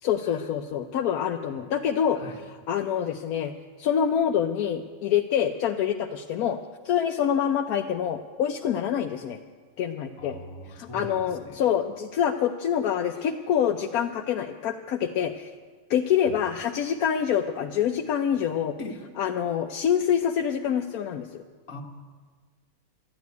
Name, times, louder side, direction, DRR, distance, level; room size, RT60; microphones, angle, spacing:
voice 1, 0.0-2.2 2.7-9.4 9.8-10.4 10.7-15.5 15.9-18.8 19.2-21.4, left 9 dB, 85° left, 4 dB, 1.2 m, -26 dB
voice 2, 10.2-11.6 13.2-13.3 16.3-16.4 18.8-19.0 21.7-21.8, left 1 dB, 65° left, 2 dB, 1.9 m, -41 dB
12.5 x 11.5 x 9.4 m, 1.5 s
omnidirectional pair, 1.5 m